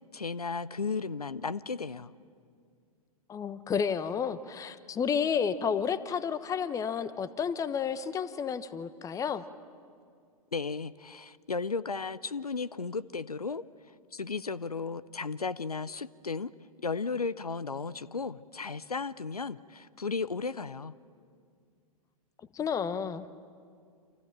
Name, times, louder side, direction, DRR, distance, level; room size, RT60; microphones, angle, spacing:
voice 1, 0.1-2.1 10.5-13.6 14.1-16.5 16.8-20.9, left 4 dB, 85° left, 18 dB, 0.7 m, -34 dB
voice 2, 3.3-9.4 22.5-23.3, left 7 dB, 15° left, 14 dB, 1.1 m, -31 dB
28.5 x 27.5 x 7.4 m, 2.2 s
figure-of-eight pair, 105°, 19 cm